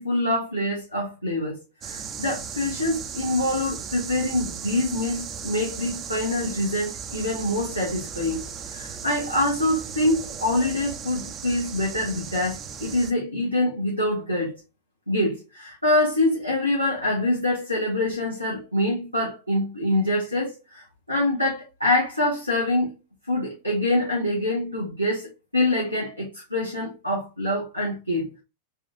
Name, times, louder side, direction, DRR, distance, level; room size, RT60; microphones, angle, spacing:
voice 1, 0.0-8.4 8.7-14.5 15.1-22.9 23.3-28.4, left 1 dB, 90° left, 0.9 m, -25 dB
sound 1, 1.8-13.1, right 7 dB, 30° right, 0.4 m, -36 dB
4.1 x 2.4 x 2.5 m
figure-of-eight pair, 90°, 0 cm